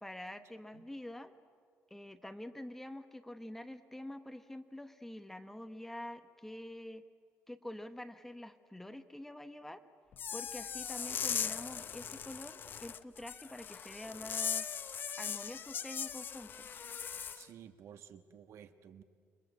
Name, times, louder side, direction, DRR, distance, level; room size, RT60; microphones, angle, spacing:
voice 1, 0.0-1.3 1.9-7.0 7.5-9.8 10.3-14.7 15.2-16.7, left 1 dB, 5° left, 9 dB, 1.0 m, -46 dB
sound 1, 10.1-17.4, left 8 dB, 45° left, 0.8 m, -39 dB
voice 2, 17.3-19.0, right 9 dB, 70° right, 10 dB, 1.3 m, -53 dB
28.5 x 23.0 x 8.2 m, 2.1 s
cardioid pair, 150°, 5 cm